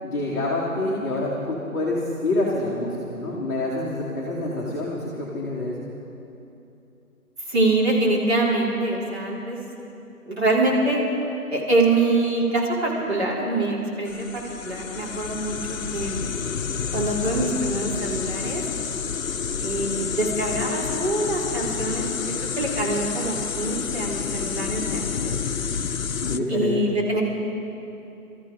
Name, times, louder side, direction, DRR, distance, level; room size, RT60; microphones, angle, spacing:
voice 1, 0.0-5.9 26.2-26.9, left 2 dB, 10° left, -11 dB, 1.0 m, -27 dB
voice 2, 7.5-9.6 10.3-11.0 11.5-16.2 16.9-18.6 19.6-22.1 22.6-25.4 26.5-27.2, right 2 dB, 45° right, -4 dB, 3.3 m, -24 dB
sound 1, 14.1-26.4, left 6 dB, 60° left, 0.6 m, -29 dB
23.0 x 13.5 x 3.8 m, 2.8 s
figure-of-eight pair, 155°, 45 cm